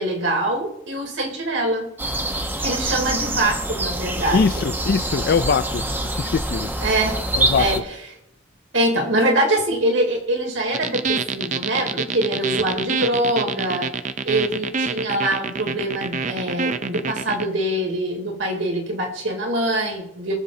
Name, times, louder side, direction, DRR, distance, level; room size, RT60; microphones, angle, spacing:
voice 1, 0.0-1.9 2.6-4.7 6.8-7.2 7.6-7.8 8.7-13.9 14.2-20.3, right 1 dB, 85° right, 3.9 m, -23 dB
sound 1, 2.0-7.8, right 1 dB, 10° right, 0.9 m, -25 dB
voice 2, 4.3-5.8 6.1-6.7 7.3-7.8, left 5 dB, 55° left, 0.4 m, -22 dB
sound 2, 10.7-17.5, right 5 dB, 40° right, 0.6 m, -26 dB
19.5 x 7.3 x 3.9 m
head